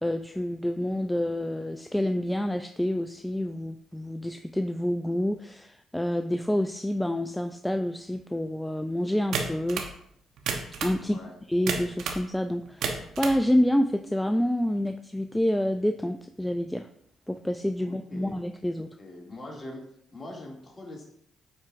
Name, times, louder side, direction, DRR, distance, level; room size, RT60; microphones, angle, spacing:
voice 1, 0.0-9.8 10.8-11.2 11.5-16.9 17.3-18.9, left 1 dB, 5° left, 7 dB, 0.3 m, -28 dB
sound 1, 9.3-9.9 10.4-11.0 11.7-12.2 12.7-13.4, right 5 dB, 75° right, 0.9 m, -31 dB
voice 2, 11.0-11.4 17.8-18.4 19.0-19.8 20.1-21.1, left 1 dB, 30° left, -2 dB, 2.2 m, -42 dB
9.5 x 4.3 x 2.5 m, 0.68 s
supercardioid pair, 70°, 0 cm